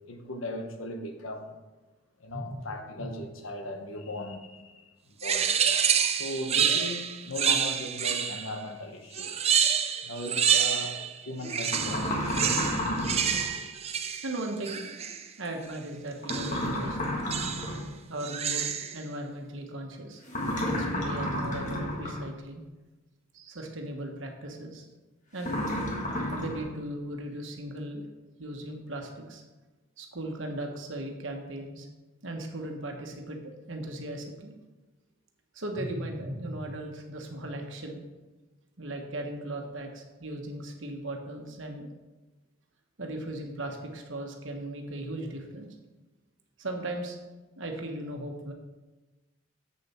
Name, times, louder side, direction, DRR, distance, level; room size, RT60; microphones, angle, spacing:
voice 1, 0.1-1.6 2.2-9.3 10.0-12.5 12.9-13.1, left 1 dB, 75° left, 1.1 m, -38 dB
sound 1, 5.2-8.6 9.1-11.1 11.4-15.2 16.3-16.6 17.3-17.8 18.2-19.0, right 8 dB, 30° right, 0.5 m, -28 dB
sound 2, 11.7-13.5 16.2-17.9 20.3-22.3 25.4-26.6, left 1 dB, 35° left, 1.5 m, -31 dB
voice 2, 14.2-14.8 15.4-17.2 18.1-20.2 20.6-22.6 23.3-24.9 25.3-25.6 26.3-28.1 28.4-29.4 30.0-31.9 32.2-34.5 35.5-38.0 38.8-41.9 43.0-45.7 46.6-47.2 47.6-48.5, right 1 dB, 65° right, 1.3 m, -37 dB
7.7 x 6.9 x 4.3 m
head